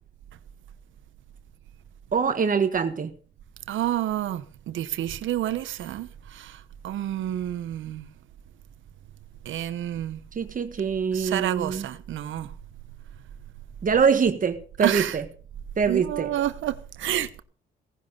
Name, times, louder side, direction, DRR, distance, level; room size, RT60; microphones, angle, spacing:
voice 1, 2.1-3.1 10.3-11.8 13.8-15.2 15.8-16.3, right 6 dB, 45° right, 1.5 m, -24 dB
voice 2, 3.7-8.1 9.4-10.2 11.1-12.5 14.8-15.2 15.9-17.4, right 12 dB, 75° right, 1.1 m, -29 dB
17.5 x 10.5 x 5.4 m
cardioid pair, 90°, 20 cm